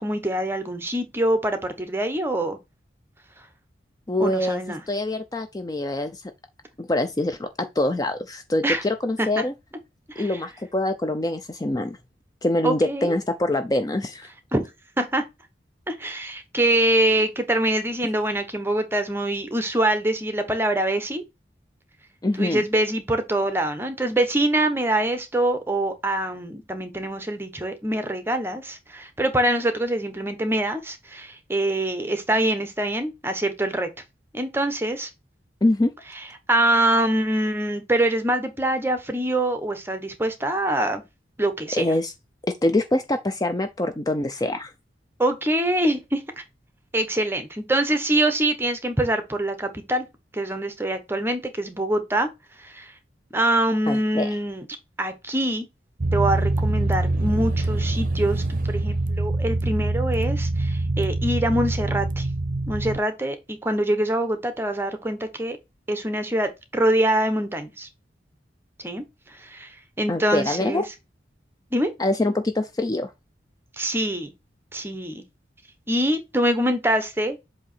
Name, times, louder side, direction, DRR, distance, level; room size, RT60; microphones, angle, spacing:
voice 1, 0.0-2.6 4.2-4.8 8.6-8.8 9.2-9.4 10.1-10.3 12.6-13.2 14.5-14.7 15.0-15.2 15.9-21.2 22.4-33.9 34.3-35.1 36.5-41.0 41.4-41.9 45.2-46.4 46.9-50.1 50.3-52.3 52.6-52.9 53.3-54.7 55.0-55.7 56.1-62.3 62.7-65.6 65.9-67.9 68.8-70.8 71.7-71.9 73.8-74.3 74.7-75.2 75.9-77.4, right 1 dB, 15° right, 0.9 m, -24 dB
voice 2, 4.1-4.6 4.9-6.2 6.8-9.5 10.2-12.0 12.4-14.3 22.2-22.6 35.6-35.9 41.8-42.1 42.6-44.7 53.9-54.4 70.1-70.8 72.0-73.1, left 1 dB, 20° left, 0.5 m, -24 dB
sound 1, 56.0-63.0, right 2 dB, 50° right, 0.7 m, -24 dB
7.7 x 2.8 x 4.3 m
head